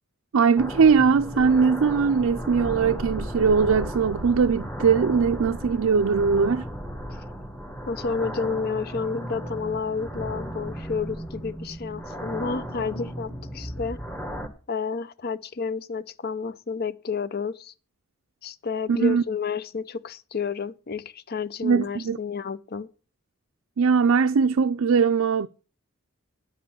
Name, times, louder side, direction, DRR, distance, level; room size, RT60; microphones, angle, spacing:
voice 1, 0.3-6.6 18.9-19.2 21.6-22.2 23.8-25.5, right 5 dB, 85° right, 0.4 m, -20 dB
sound 1, 0.6-14.5, equal, 5° left, 1.1 m, -35 dB
voice 2, 7.9-14.0 14.7-17.7 18.4-22.9, left 5 dB, 50° left, 0.6 m, -30 dB
9.5 x 7.5 x 7.6 m
head